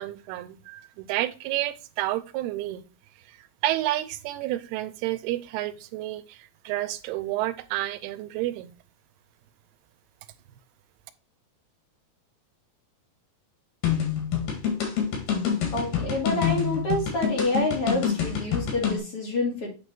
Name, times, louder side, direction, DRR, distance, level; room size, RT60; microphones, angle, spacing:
voice 1, 0.0-2.8 3.3-8.7, right 15 dB, 90° right, 2.6 m, -30 dB
sound 1, 13.8-19.0, left 8 dB, 80° left, 3.8 m, -26 dB
voice 2, 15.7-19.8, left 1 dB, 45° left, 2.7 m, -28 dB
8.4 x 3.3 x 4.4 m
omnidirectional pair, 4.4 m